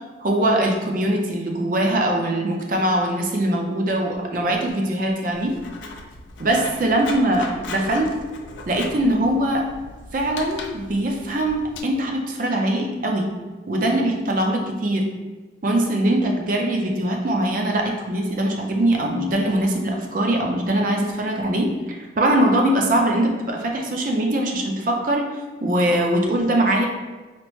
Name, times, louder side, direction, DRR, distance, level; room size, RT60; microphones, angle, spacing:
voice 1, 0.2-5.6 6.4-8.2 8.7-9.7 10.1-13.3 13.7-15.1 15.6-25.3 25.6-26.9, right 1 dB, 45° right, 1 dB, 0.4 m, -22 dB
Writing, 5.3-11.8, left 3 dB, 80° left, 0.4 m, -38 dB
4.2 x 2.0 x 3.0 m, 1.3 s
head